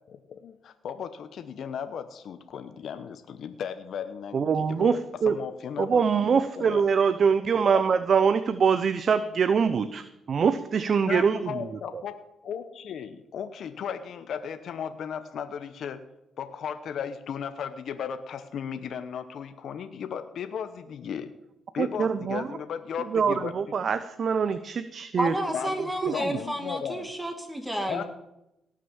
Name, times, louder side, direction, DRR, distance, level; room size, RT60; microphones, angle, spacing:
voice 1, 0.1-6.0 6.6-6.8 7.7-7.8 11.1-12.1 12.4-16.0 16.4-21.3 21.7-23.5 25.5-27.1 27.9-28.0, left 7 dB, 65° left, 10 dB, 0.9 m, -35 dB
voice 2, 4.3-5.3 5.8-11.5 11.9-12.0 21.8-22.5 23.1-25.3 26.0-26.4, right 6 dB, 50° right, 12 dB, 0.7 m, -24 dB
voice 3, 25.2-28.0, equal, 10° right, 4 dB, 2.2 m, -31 dB
18.0 x 6.5 x 7.2 m, 0.88 s
cardioid pair, 90°, 0 cm